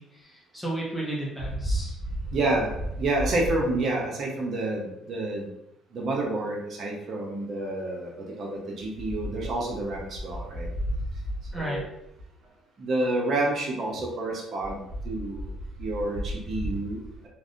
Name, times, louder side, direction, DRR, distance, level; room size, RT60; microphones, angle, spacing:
voice 1, 0.0-1.9 11.5-11.8, right 1 dB, ahead, -5 dB, 0.9 m, -33 dB
voice 2, 2.3-5.5 5.9-8.1 8.4-10.7 11.6-11.8 12.8-14.7 15.0-15.5 15.8-17.0, right 2 dB, 55° right, -2 dB, 0.9 m, -28 dB
3.2 x 2.5 x 2.6 m, 0.83 s
supercardioid pair, 70°, 0 cm